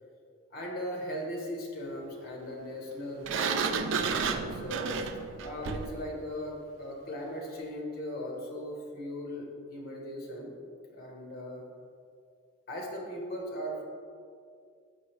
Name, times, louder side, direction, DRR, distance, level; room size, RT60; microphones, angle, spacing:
voice 1, 0.5-3.7 4.1-10.6 10.9-11.6 12.7-13.8, equal, 45° left, -1 dB, 1.0 m, -38 dB
Sliding door, 3.2-6.0, right 5 dB, 60° right, 0.3 m, -31 dB
6.3 x 4.8 x 3.1 m, 2.3 s
head